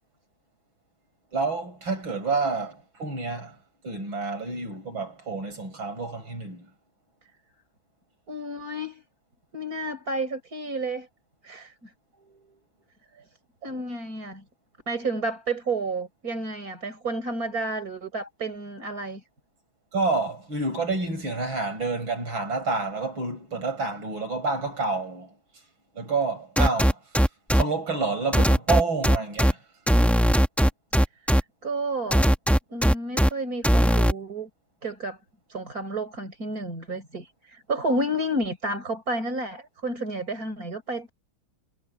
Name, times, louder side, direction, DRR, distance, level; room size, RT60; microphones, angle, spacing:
voice 1, 1.3-3.6 3.8-6.7 12.2-12.6 13.6-13.8 19.9-25.3 25.9-27.0 27.5-29.6, right 3 dB, 70° right, 7.2 m, -29 dB
voice 2, 8.3-9.0 9.5-11.1 11.4-11.9 13.6-14.4 14.9-19.2 31.6-32.3 32.7-34.5 34.8-35.2 35.5-41.1, right 2 dB, 45° right, 5.9 m, -31 dB
sound 1, 26.6-27.6 28.3-29.5 29.9-31.4 32.1-33.3 33.6-34.1, equal, ahead, 1.1 m, -19 dB
omnidirectional pair, 2.2 m